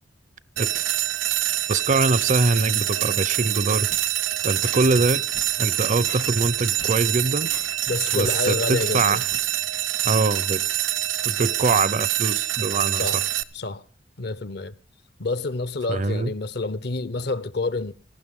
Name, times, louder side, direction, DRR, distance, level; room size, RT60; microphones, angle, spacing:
sound 1, 0.6-13.4, right 13 dB, 85° right, 0.8 m, -25 dB
voice 1, 1.7-3.9 4.4-5.2 5.6-7.5 8.1-9.2 10.0-10.6 11.3-13.1 15.9-16.3, right 3 dB, 40° right, 0.6 m, -23 dB
sound 2, 3.9-9.5, left 4 dB, 75° left, 1.7 m, -43 dB
voice 2, 7.9-9.2 12.9-13.2 13.5-13.8 14.2-14.7 15.2-17.9, left 3 dB, 60° left, 0.8 m, -28 dB
18.5 x 15.5 x 3.6 m
head